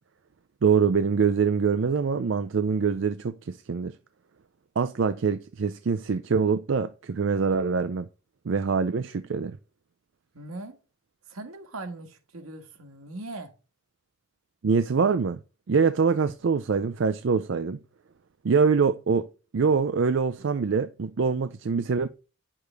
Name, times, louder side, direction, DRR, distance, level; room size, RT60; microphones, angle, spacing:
voice 1, 0.6-3.9 4.8-8.1 8.5-9.6 14.6-15.4 15.7-17.8 18.4-19.3 19.5-22.1, right 5 dB, 60° right, 0.4 m, -24 dB
voice 2, 10.3-10.8 11.3-13.5, right 2 dB, 85° right, 1.6 m, -40 dB
9.4 x 6.7 x 3.4 m
head